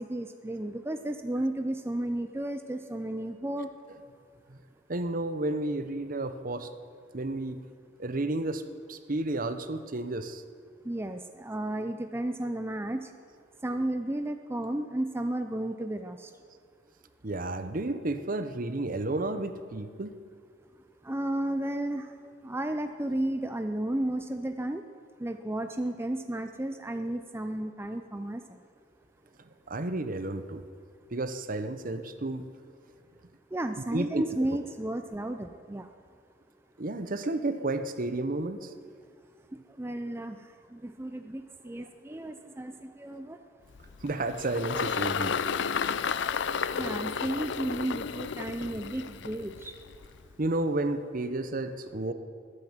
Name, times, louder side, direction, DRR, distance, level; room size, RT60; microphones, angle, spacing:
voice 1, 0.0-3.7 10.9-13.0 13.6-16.2 21.1-22.0 22.4-24.8 25.2-28.4 33.5-35.9 39.8-40.4 40.8-42.7 43.0-43.4 46.7-49.7, right 1 dB, 15° right, 7 dB, 0.5 m, -33 dB
voice 2, 4.9-6.7 7.1-7.6 8.0-8.6 8.9-10.4 17.2-20.1 29.7-30.6 31.1-32.5 33.9-34.2 36.8-38.7 44.0-45.4 50.4-52.1, right 2 dB, 45° right, 10 dB, 0.9 m, -31 dB
Engine, 43.7-50.3, left 6 dB, 65° left, 0.5 m, -32 dB
20.0 x 9.8 x 7.4 m, 2.1 s
head